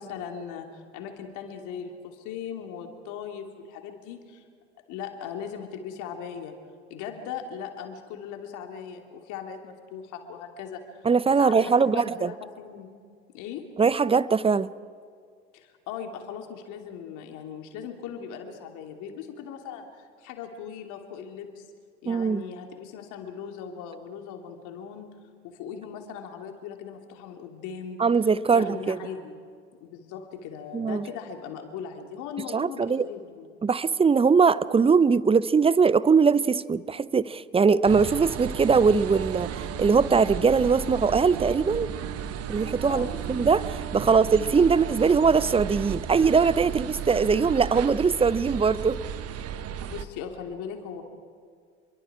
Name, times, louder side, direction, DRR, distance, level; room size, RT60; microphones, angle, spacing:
voice 1, 0.0-4.5 4.9-6.5 6.9-11.1 11.4-13.0 13.3-13.7 15.5-21.7 22.0-25.1 25.4-28.0 28.5-29.3 29.8-33.5 42.9-43.2 44.0-44.3 49.9-51.0, left 7 dB, 60° left, 2.9 m, -39 dB
voice 2, 11.0-12.3 13.8-14.7 22.1-22.4 28.0-29.0 30.7-31.1 32.5-33.1 33.6-39.5 39.8-41.9 42.5-49.0, right 5 dB, 15° right, 0.7 m, -21 dB
sound 1, 37.8-50.0, right 8 dB, 45° right, 1.3 m, -34 dB
27.0 x 23.0 x 4.9 m
hypercardioid pair, 65°, 34 cm